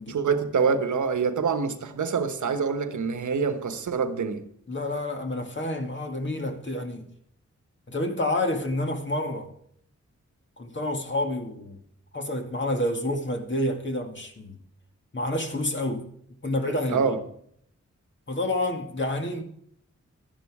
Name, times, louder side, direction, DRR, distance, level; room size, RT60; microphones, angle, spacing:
voice 1, 0.1-4.5 16.9-17.2, right 5 dB, 90° right, 1.2 m, -26 dB
voice 2, 4.7-7.1 7.9-9.5 10.6-11.8 12.1-14.6 15.1-16.1 16.4-17.2 18.3-19.4, left 1 dB, 40° left, 2.0 m, -29 dB
12.0 x 11.5 x 4.8 m
wide cardioid pair, 95°, 29 cm